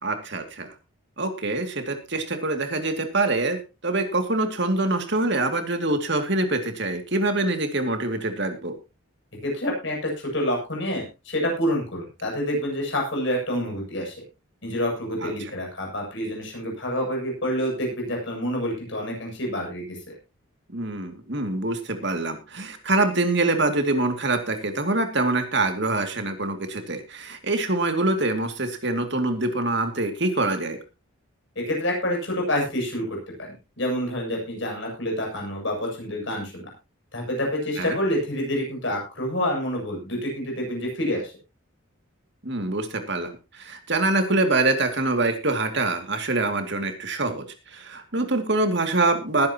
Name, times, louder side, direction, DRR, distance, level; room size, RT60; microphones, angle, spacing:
voice 1, 0.0-0.7 1.2-8.7 15.2-15.3 20.7-30.8 37.8-38.0 42.4-49.5, right 2 dB, 55° right, 6 dB, 2.5 m, -25 dB
voice 2, 9.4-14.1 14.6-20.1 31.5-33.1 33.4-36.6 37.1-41.3, equal, 60° left, 0 dB, 7.9 m, -27 dB
20.5 x 10.5 x 3.0 m, 0.28 s
head